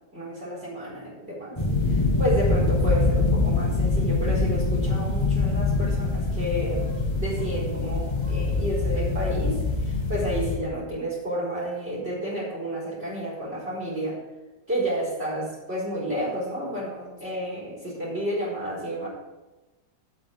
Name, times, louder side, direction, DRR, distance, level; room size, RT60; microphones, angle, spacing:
voice 1, 0.1-14.2 14.7-19.1, right 1 dB, 35° right, -7 dB, 4.8 m, -31 dB
Single huge clap of thunder, 1.6-10.6, left 3 dB, 15° left, 1.5 m, -24 dB
8.7 x 6.8 x 8.6 m, 1.1 s
omnidirectional pair, 1.8 m